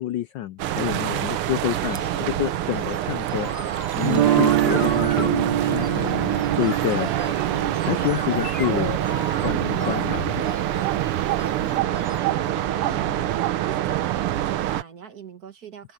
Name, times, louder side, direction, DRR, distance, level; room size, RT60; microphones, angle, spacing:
voice 1, 0.0-8.9 9.4-10.5, left 13 dB, 75° left, 1.1 m, -29 dB
sound 1, 0.6-14.8, right 13 dB, 85° right, 1.8 m, -25 dB
sound 2, 1.7-13.3, left 3 dB, 30° left, 1.9 m, -36 dB
Guitar, 4.0-10.0, right 11 dB, 65° right, 1.1 m, -25 dB
voice 2, 11.6-13.3 13.6-15.9, right 7 dB, 45° right, 1.9 m, -42 dB
omnidirectional pair, 2.4 m